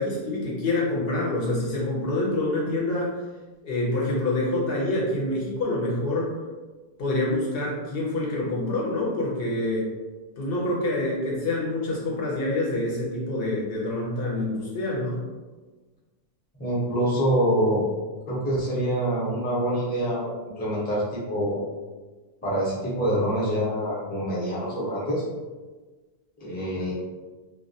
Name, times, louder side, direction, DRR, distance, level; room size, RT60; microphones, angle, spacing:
voice 1, 0.0-3.1 3.6-6.3 7.0-9.9 10.4-15.2, left 2 dB, 70° left, -4 dB, 0.8 m, -26 dB
voice 2, 16.6-17.8 18.3-21.6 22.4-25.2 26.4-26.9, equal, 10° left, -8 dB, 0.5 m, -25 dB
2.3 x 2.1 x 2.6 m, 1.3 s
omnidirectional pair, 1.1 m